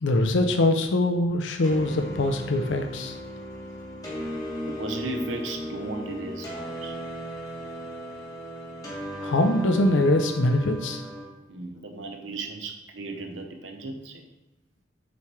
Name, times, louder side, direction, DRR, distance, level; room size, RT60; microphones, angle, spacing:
voice 1, 0.0-3.1 9.2-11.0, left 1 dB, 70° left, 5 dB, 0.5 m, -23 dB
sound 1, 1.6-11.2, equal, 20° left, 1.5 m, -36 dB
voice 2, 4.7-7.0 11.5-14.2, right 2 dB, 75° right, 4 dB, 0.8 m, -35 dB
7.0 x 3.2 x 4.5 m, 0.99 s
head